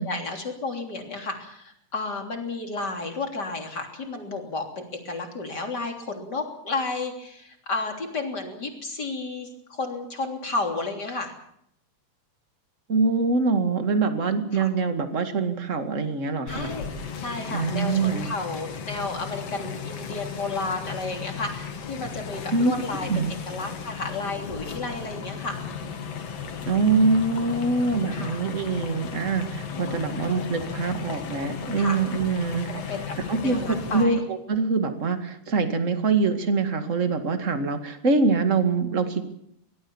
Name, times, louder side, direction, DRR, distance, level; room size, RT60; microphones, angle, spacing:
voice 1, 0.0-11.3 14.5-14.7 16.5-16.9 17.2-23.1 23.5-25.6 28.1-28.4 29.7-30.2 31.8-32.0 32.9-33.1 33.4-34.2, left 3 dB, 30° left, 3 dB, 3.5 m, -32 dB
voice 2, 12.9-16.7 17.5-18.3 22.5-22.7 23.1-23.3 26.6-32.7 33.3-39.3, right 4 dB, 30° right, 7 dB, 1.6 m, -24 dB
sound 1, 16.5-34.0, left 6 dB, 50° left, 2.4 m, -35 dB
24.0 x 19.0 x 7.2 m, 0.72 s
omnidirectional pair, 4.2 m